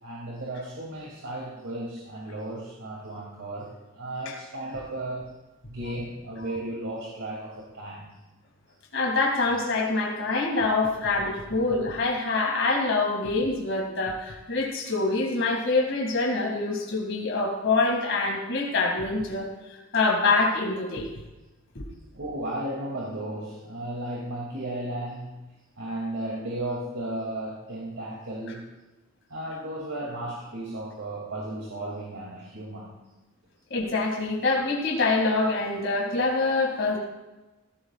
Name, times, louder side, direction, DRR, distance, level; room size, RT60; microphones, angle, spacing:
voice 1, 0.0-5.3 5.7-8.1 22.1-25.5 25.8-28.7 29.3-33.0, right 1 dB, 70° right, -4 dB, 2.6 m, -35 dB
voice 2, 8.9-19.5 19.9-21.1 21.7-21.9 33.7-37.0, left 3 dB, 55° left, -2 dB, 2.3 m, -25 dB
17.5 x 16.0 x 2.4 m, 1.1 s
head